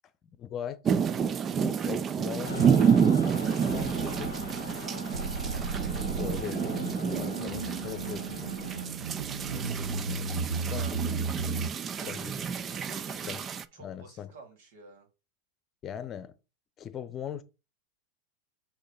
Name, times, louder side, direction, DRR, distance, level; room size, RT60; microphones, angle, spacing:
voice 1, 0.3-0.8 1.5-2.7 3.7-4.3 6.1-6.7 7.1-8.5 9.5-9.9 10.7-11.0 12.1-12.3 13.3-13.4 13.8-14.3 15.8-16.3 16.8-17.4, left 9 dB, 35° left, 0.8 m, -39 dB
sound 1, 0.9-13.6, right 7 dB, 30° right, 0.5 m, -29 dB
Mechanical fan, 2.4-8.9, left 7 dB, 80° left, 0.3 m, -43 dB
voice 2, 3.7-4.5 4.8-5.3 7.1-7.4 10.8-11.0 11.9-12.4 12.7-15.1, right 3 dB, 65° right, 2.2 m, -51 dB
sound 2, 3.7-4.8 5.1-11.7, right 4 dB, 85° right, 0.6 m, -35 dB
6.3 x 2.9 x 5.5 m
hypercardioid pair, 95°, 0 cm